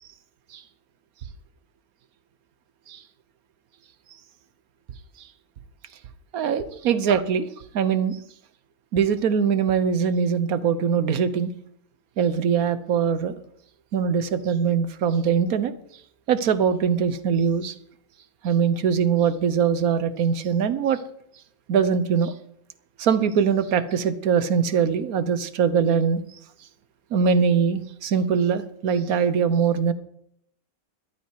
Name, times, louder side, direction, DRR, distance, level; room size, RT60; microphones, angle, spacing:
voice 1, 6.3-7.5 7.7-8.2 8.9-11.5 12.2-13.4 13.9-15.7 16.3-17.7 18.4-21.0 21.7-22.3 23.0-26.2 27.1-29.9, right 7 dB, 90° right, 13 dB, 1.4 m, -22 dB
14.5 x 12.5 x 4.8 m, 0.70 s
omnidirectional pair, 1.5 m